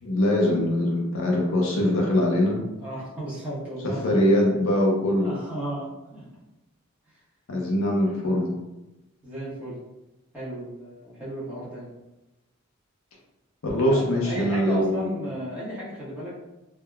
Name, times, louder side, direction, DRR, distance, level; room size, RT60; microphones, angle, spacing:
voice 1, 0.0-2.6 3.8-5.3 7.5-8.5 13.6-15.1, left 1 dB, 65° left, -1 dB, 0.6 m, -22 dB
voice 2, 2.8-4.2 5.2-6.2 9.2-9.8 10.3-11.9 13.9-16.4, right 1 dB, 5° right, -10 dB, 0.9 m, -34 dB
3.5 x 2.1 x 2.3 m, 0.98 s
head